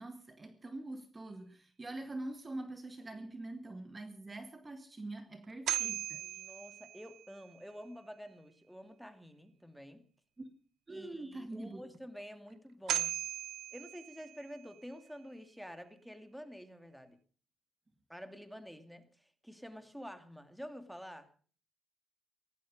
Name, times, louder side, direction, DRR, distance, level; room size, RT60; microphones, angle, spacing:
voice 1, 0.0-6.2 10.9-11.8, right 2 dB, 25° right, 1.9 m, -44 dB
sound 1, 5.4-7.5 12.5-12.6 12.9-14.8, right 11 dB, 75° right, 0.7 m, -38 dB
voice 2, 6.2-10.0 10.9-13.2 13.7-17.2 18.1-21.3, equal, ahead, 2.4 m, -49 dB
17.5 x 15.5 x 5.3 m
cardioid pair, 90°, 0 cm